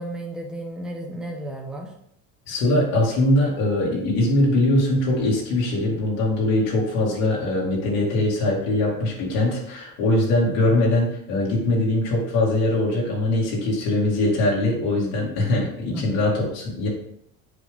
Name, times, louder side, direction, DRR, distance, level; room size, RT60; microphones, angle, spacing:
voice 1, 0.0-1.9 15.9-16.1, right 1 dB, ahead, 0 dB, 0.9 m, -33 dB
voice 2, 2.5-16.9, left 1 dB, 70° left, -3 dB, 2.4 m, -22 dB
7.5 x 4.6 x 3.6 m, 0.73 s
cardioid pair, 130°, 34 cm